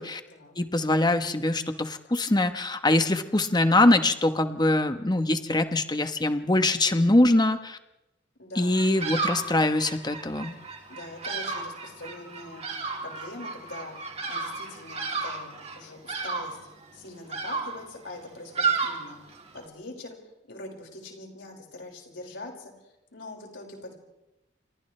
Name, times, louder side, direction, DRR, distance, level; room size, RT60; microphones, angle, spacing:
voice 1, 0.0-0.5 8.4-9.6 10.9-12.7 13.0-13.9 14.2-16.6 16.9-24.0, left 2 dB, 75° left, 1 dB, 5.3 m, -43 dB
voice 2, 0.6-7.8 8.6-10.5, left 2 dB, 25° left, 8 dB, 1.1 m, -23 dB
Bird vocalization bird call bird song, 8.7-19.7, right 4 dB, 35° right, 3.1 m, -33 dB
30.0 x 27.5 x 3.3 m, 0.95 s
head